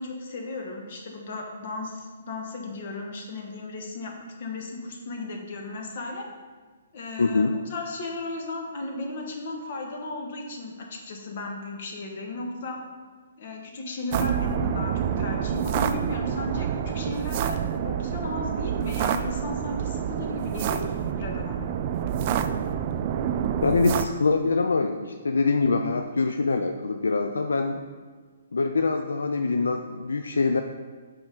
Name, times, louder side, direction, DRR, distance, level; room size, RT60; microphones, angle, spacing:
voice 1, 0.0-4.1 4.4-6.2 6.9-12.8 13.4-21.7, left 2 dB, 50° left, 1 dB, 1.2 m, -35 dB
voice 2, 7.2-7.6 23.6-27.8 28.5-30.6, left 4 dB, 85° left, 6 dB, 0.3 m, -24 dB
sound 1, 14.1-24.1, right 9 dB, 40° right, 0.3 m, -28 dB
6.3 x 4.5 x 3.8 m, 1.5 s
hypercardioid pair, 140°, 0 cm